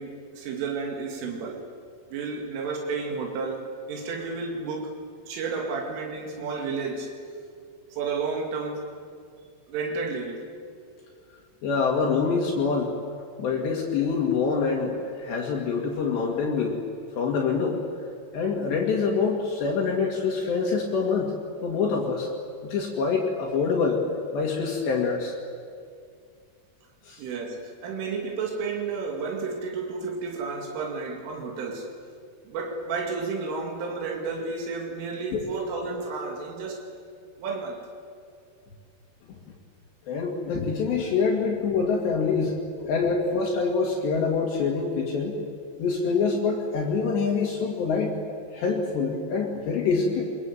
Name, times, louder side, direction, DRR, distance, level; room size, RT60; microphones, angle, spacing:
voice 1, 0.0-1.6 2.1-5.0 5.3-7.1 7.9-8.8 9.7-10.4 27.2-31.9 32.5-36.9 37.4-37.8, right 4 dB, 85° right, 1 dB, 4.8 m, -32 dB
voice 2, 11.6-12.9 13.4-16.8 17.2-17.8 18.3-21.3 21.6-22.3 22.6-24.0 24.3-25.3 27.1-27.2 35.3-35.4 40.1-45.3 45.8-48.1 48.5-50.2, left 5 dB, 65° left, -1 dB, 4.3 m, -25 dB
26.5 x 22.5 x 9.2 m, 2.2 s
omnidirectional pair, 5.5 m